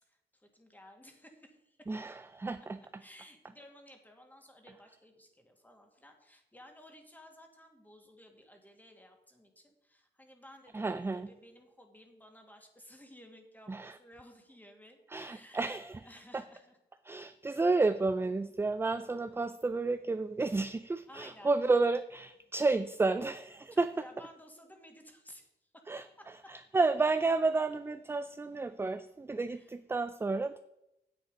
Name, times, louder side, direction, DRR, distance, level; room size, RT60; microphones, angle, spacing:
voice 1, 0.0-1.9 3.0-15.7 16.0-16.8 21.1-21.5 22.6-22.8 23.0-23.2 23.7-25.9 26.2-26.5 29.5-29.7, equal, 10° left, 4 dB, 2.1 m, -56 dB
voice 2, 1.9-2.6 10.7-11.3 13.7-13.9 15.1-16.0 17.1-23.9 25.9-26.0 26.5-30.6, right 3 dB, 15° right, 11 dB, 0.4 m, -31 dB
9.4 x 7.8 x 5.1 m, 0.87 s
cardioid pair, 90°, 18 cm